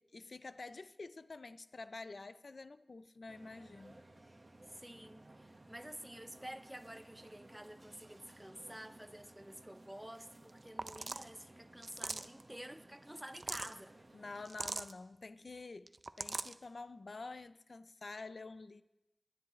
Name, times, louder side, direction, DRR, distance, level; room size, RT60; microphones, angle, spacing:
voice 1, 0.0-4.0 14.1-15.9 16.2-18.8, left 3 dB, 70° left, 0.4 m, -48 dB
sound 1, 3.3-14.5, right 2 dB, 45° right, 1.2 m, -59 dB
voice 2, 4.7-14.0, right 1 dB, 10° right, 0.6 m, -50 dB
sound 2, 10.5-10.6 10.8-11.3 11.8-12.4 13.2-13.7 14.5-14.9 15.9-16.5, right 3 dB, 60° right, 0.4 m, -41 dB
21.0 x 10.0 x 3.1 m
wide cardioid pair, 65°, 0 cm